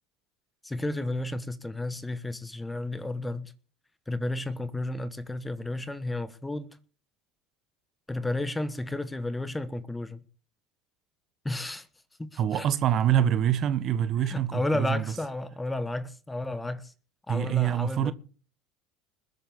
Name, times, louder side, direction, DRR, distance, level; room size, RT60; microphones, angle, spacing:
voice 1, 0.6-3.5 4.1-6.7 8.1-10.2 11.4-11.9 12.2-12.7 14.2-16.9 17.3-18.1, left 2 dB, 10° left, 1.2 m, -32 dB
voice 2, 12.4-15.0 17.3-18.1, right 10 dB, 45° right, 1.3 m, -25 dB
21.0 x 8.2 x 7.1 m
supercardioid pair, 120°, 0 cm